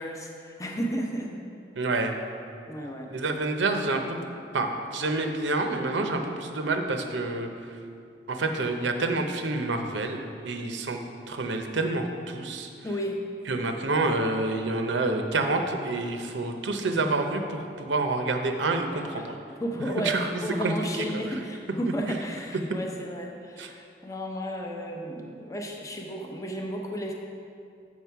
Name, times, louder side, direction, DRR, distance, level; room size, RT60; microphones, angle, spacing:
voice 1, 0.0-1.3 2.7-3.1 12.8-13.2 18.9-19.2 19.6-27.1, equal, 20° left, 1 dB, 0.7 m, -33 dB
voice 2, 1.8-2.1 3.1-4.2 4.5-7.5 8.3-11.0 11.3-12.7 13.5-19.3 20.0-20.3 20.6-21.0 22.1-22.2 23.6-23.7, right 2 dB, 90° right, 5 dB, 0.7 m, -28 dB
7.3 x 6.0 x 4.6 m, 2.4 s
head